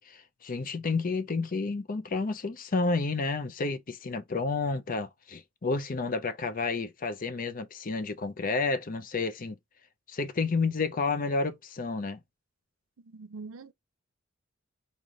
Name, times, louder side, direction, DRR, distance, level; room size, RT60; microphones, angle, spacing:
voice 1, 0.0-9.6 10.1-12.2, left 3 dB, 40° left, 0.6 m, -30 dB
voice 2, 13.0-13.7, right 4 dB, 85° right, 0.6 m, -43 dB
4.1 x 3.3 x 3.8 m
head